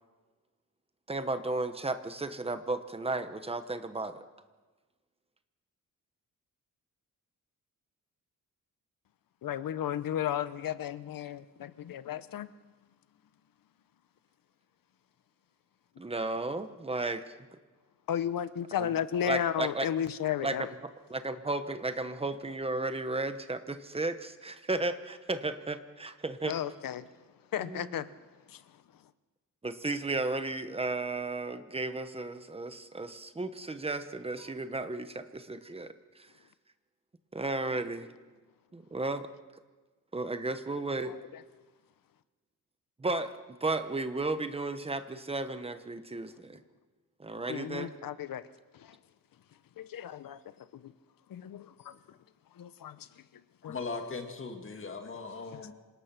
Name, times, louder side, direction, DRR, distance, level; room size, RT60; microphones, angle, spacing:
voice 1, 1.1-4.2 16.0-17.4 18.8-18.9 19.2-19.9 20.4-26.6 27.6-28.0 29.6-36.3 37.3-38.1 38.7-39.3 40.1-41.1 43.0-46.6 47.2-47.9, right 2 dB, 15° right, 1.0 m, -34 dB
voice 2, 9.4-12.5 18.1-20.7 26.5-27.1 27.5-28.1 28.5-28.6 41.0-41.4 47.5-48.4 48.7-49.0 49.8-50.9 51.3-52.0 52.6-53.1 53.6-53.8 55.5-55.7, left 10 dB, 75° left, 0.9 m, -34 dB
voice 3, 53.6-55.7, left 4 dB, 35° left, 2.1 m, -39 dB
26.5 x 18.5 x 5.9 m
wide cardioid pair, 175°, 34 cm